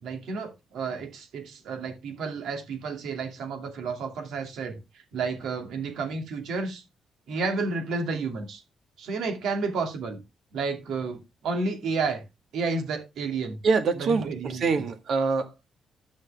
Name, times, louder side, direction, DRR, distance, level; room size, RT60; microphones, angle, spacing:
voice 1, 0.0-6.8 7.3-8.6 9.0-10.2 10.5-12.2 12.5-13.6 14.0-14.8, right 4 dB, 80° right, 2.5 m, -31 dB
voice 2, 13.6-15.7, right 4 dB, 60° right, 1.6 m, -25 dB
12.5 x 6.3 x 3.4 m
cardioid pair, 110°, 0 cm